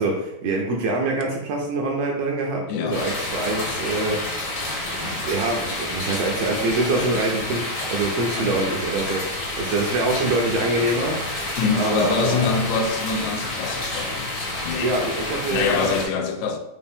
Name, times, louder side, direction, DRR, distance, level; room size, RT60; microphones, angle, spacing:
voice 1, 0.0-4.2 5.0-11.2 11.7-12.5 14.8-16.0, right 2 dB, 75° right, 1.6 m, -25 dB
voice 2, 2.7-3.0 8.4-8.6 11.6-14.3 14.6-14.9 15.5-16.6, left 5 dB, 85° left, 1.9 m, -25 dB
sound 1, 2.9-16.1, left 1 dB, 50° left, 1.3 m, -29 dB
5.3 x 2.6 x 3.4 m
omnidirectional pair, 3.3 m